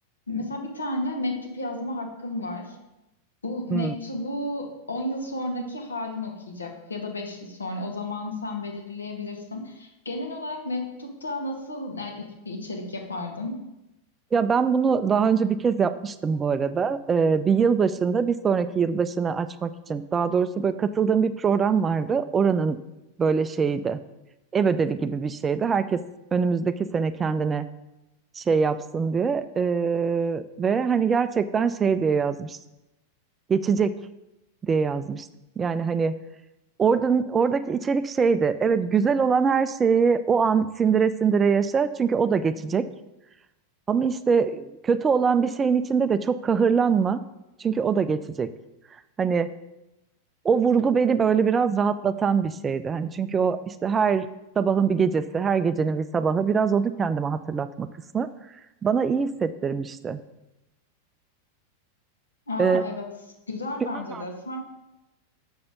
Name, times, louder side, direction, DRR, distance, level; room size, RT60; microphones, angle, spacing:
voice 1, 0.3-2.8 3.4-13.6 62.5-63.1 63.5-64.6, left 2 dB, 75° left, 2 dB, 1.7 m, -32 dB
voice 2, 14.3-22.8 23.2-24.0 24.5-26.0 26.3-27.7 28.4-32.6 33.5-33.9 34.6-35.3 35.6-36.2 36.8-42.9 43.9-47.2 47.6-48.5 49.2-49.5 50.4-54.3 54.6-57.9 58.1-58.3 58.8-60.2 62.6-62.8 63.8-64.2, right 6 dB, 20° right, 13 dB, 0.4 m, -23 dB
6.9 x 6.8 x 5.2 m, 0.95 s
figure-of-eight pair, 90°, 0 cm